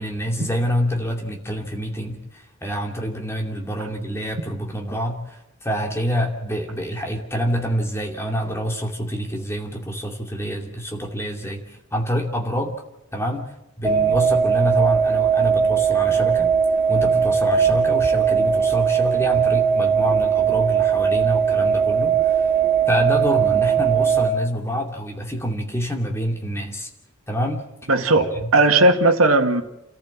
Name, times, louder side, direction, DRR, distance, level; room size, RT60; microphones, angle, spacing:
voice 1, 0.0-12.7 13.1-13.5 13.8-16.5 16.9-22.5 22.9-26.9 27.3-27.6 28.1-28.5, equal, 10° left, 2 dB, 2.6 m, -26 dB
sound 1, 13.8-24.3, right 7 dB, 10° right, 2.5 m, -19 dB
voice 2, 27.9-28.3 28.5-29.6, right 2 dB, 70° right, 5 dB, 2.0 m, -16 dB
29.0 x 14.0 x 7.3 m, 0.90 s
head